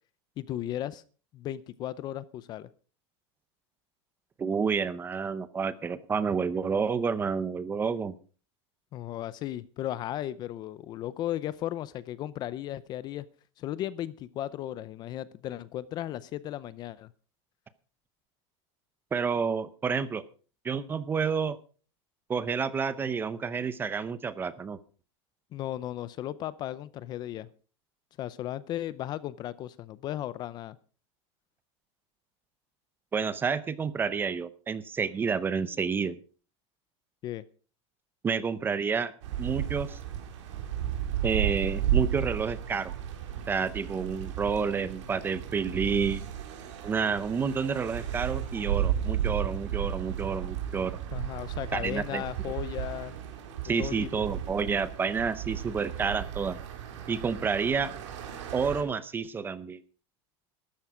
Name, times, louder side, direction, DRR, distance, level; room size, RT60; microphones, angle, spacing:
voice 1, 0.4-1.0 1.3-2.7 8.9-13.3 13.6-17.1 25.5-27.5 28.2-30.8 37.2-37.4 51.1-53.1 53.8-54.1, left 13 dB, 30° left, 18 dB, 0.6 m, -35 dB
voice 2, 4.4-8.1 19.1-20.2 20.6-21.6 22.3-24.8 33.1-36.2 38.2-39.1 39.4-40.0 41.2-42.9 43.5-46.2 46.8-51.0 51.7-52.2 53.6-56.6 57.1-57.9 58.5-59.8, right 5 dB, 15° right, 16 dB, 0.6 m, -29 dB
sound 1, 39.2-58.8, right 10 dB, 80° right, 4.0 m, -34 dB
13.5 x 13.0 x 5.0 m, 0.39 s
supercardioid pair, 165°, 15 cm